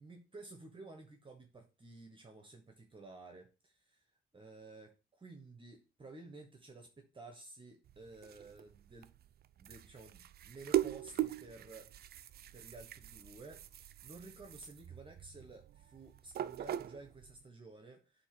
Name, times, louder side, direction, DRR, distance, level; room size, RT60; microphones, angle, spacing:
voice 1, 0.0-4.0 4.3-9.1 9.6-11.9 12.5-18.3, right 3 dB, 25° right, 4 dB, 1.2 m, -53 dB
sound 1, 7.8-17.4, right 12 dB, 55° right, 0.4 m, -41 dB
8.1 x 2.9 x 5.9 m, 0.33 s
cardioid pair, 90°, 20 cm